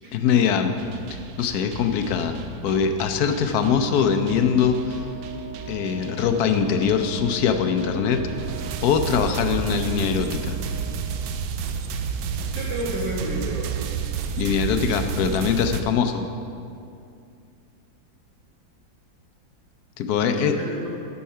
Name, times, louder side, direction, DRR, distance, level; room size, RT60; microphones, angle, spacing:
voice 1, 0.1-0.8 1.1-2.4 2.6-5.0 5.7-8.3 8.8-10.6 14.4-16.3 20.0-20.6, left 7 dB, 65° left, 7 dB, 1.1 m, -22 dB
sound 1, 0.8-15.8, right 7 dB, 90° right, 1.4 m, -32 dB
Wind instrument woodwind instrument, 3.5-11.3, right 2 dB, 35° right, 0.7 m, -42 dB
voice 2, 12.5-13.9 20.2-20.9, right 1 dB, 55° right, -6 dB, 2.8 m, -31 dB
13.5 x 5.6 x 5.6 m, 2.5 s
omnidirectional pair, 2.1 m